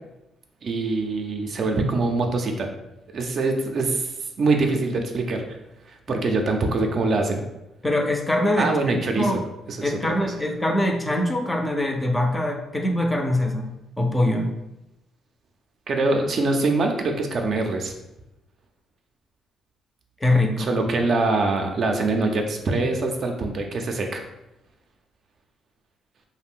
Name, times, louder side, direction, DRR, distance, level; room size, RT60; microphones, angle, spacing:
voice 1, 0.6-2.7 3.1-5.5 5.9-7.4 8.6-9.4 9.7-10.3 15.9-17.9 20.6-24.2, right 3 dB, 55° right, 4 dB, 0.4 m, -24 dB
voice 2, 7.8-8.7 9.2-9.4 9.8-14.5 20.2-20.9, left 1 dB, 10° left, 3 dB, 0.4 m, -23 dB
2.5 x 2.1 x 3.5 m, 0.91 s
cardioid pair, 90°, 0 cm